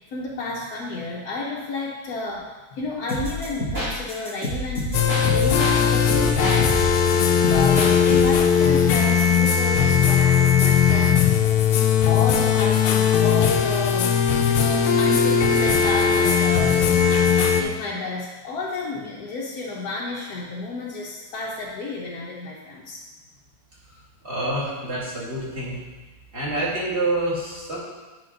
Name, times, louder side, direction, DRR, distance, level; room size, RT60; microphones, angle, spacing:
voice 1, 0.1-5.0 5.3-6.9 7.5-11.5 12.0-23.0, left 3 dB, 60° left, -4 dB, 1.1 m, -31 dB
sound 1, 3.1-5.8 6.1-8.4, equal, 45° right, 3.1 m, -29 dB
sound 2, 4.9-17.6, left 7 dB, 85° left, 1.5 m, -18 dB
voice 2, 24.2-25.8 26.3-27.8, right 2 dB, 30° right, -8 dB, 2.3 m, -27 dB
9.0 x 5.1 x 3.8 m, 1.2 s
omnidirectional pair, 2.3 m